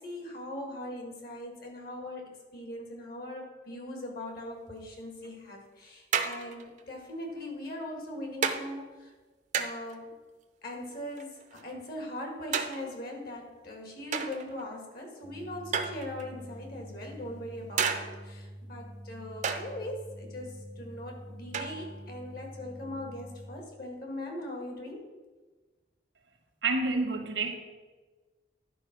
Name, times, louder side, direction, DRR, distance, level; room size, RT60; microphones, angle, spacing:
voice 1, 0.0-9.1 9.5-10.1 10.6-25.1, left 1 dB, 55° left, 1 dB, 2.0 m, -40 dB
sound 1, 5.2-5.3 6.1-6.8 7.7-7.8 8.4-8.6 9.5-10.0 11.2-11.8 12.5-13.1 14.1-14.6 15.7-16.4 17.8-18.3 19.4-19.8 21.5-22.0, right 6 dB, 45° right, 0.7 m, -32 dB
sound 2, 15.2-23.6, equal, 75° left, 3.1 m, -46 dB
voice 2, 26.6-27.5, right 3 dB, 85° right, 5 dB, 1.3 m, -28 dB
10.5 x 4.7 x 6.0 m, 1.3 s
head